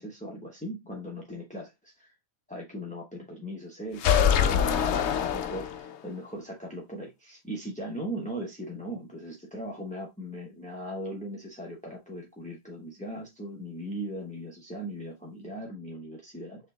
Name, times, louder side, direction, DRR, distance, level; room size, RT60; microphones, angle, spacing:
voice 1, 0.0-2.1 2.5-16.7, equal, 10° left, -1 dB, 0.6 m, -39 dB
sound 1, 4.0-6.1, left 8 dB, 65° left, 0.7 m, -24 dB
6.4 x 3.2 x 2.2 m, 0.21 s
omnidirectional pair, 1.5 m